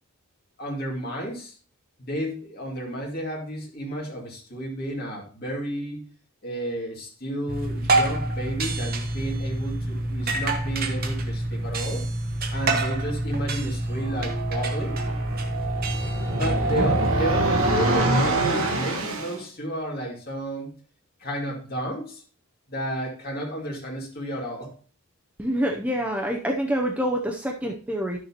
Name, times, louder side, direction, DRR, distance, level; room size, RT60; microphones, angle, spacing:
voice 1, 0.6-1.6 2.0-6.1 6.4-12.0 12.5-15.0 16.3-20.7 21.2-22.2 22.7-24.7, equal, 45° left, -1 dB, 2.3 m, -32 dB
sound 1, 7.5-18.0, right 2 dB, 40° right, 1.0 m, -27 dB
sound 2, 13.9-19.4, right 2 dB, 65° right, 1.2 m, -25 dB
voice 2, 25.4-28.2, equal, 5° right, 1 dB, 0.5 m, -26 dB
10.5 x 6.5 x 2.9 m, 0.38 s
head